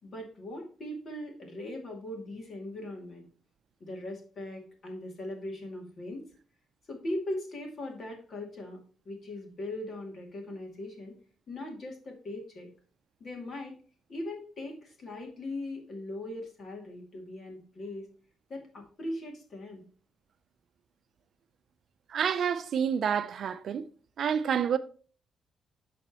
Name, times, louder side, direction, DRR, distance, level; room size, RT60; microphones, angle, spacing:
voice 1, 0.0-3.3 3.8-6.2 6.9-11.1 11.5-12.7 13.2-13.8 14.1-18.1 18.5-19.8, left 1 dB, 40° left, 2.4 m, -39 dB
voice 2, 22.1-23.8 24.2-24.8, right 8 dB, 55° right, 0.6 m, -28 dB
12.5 x 4.2 x 3.0 m
cardioid pair, 155°, 0 cm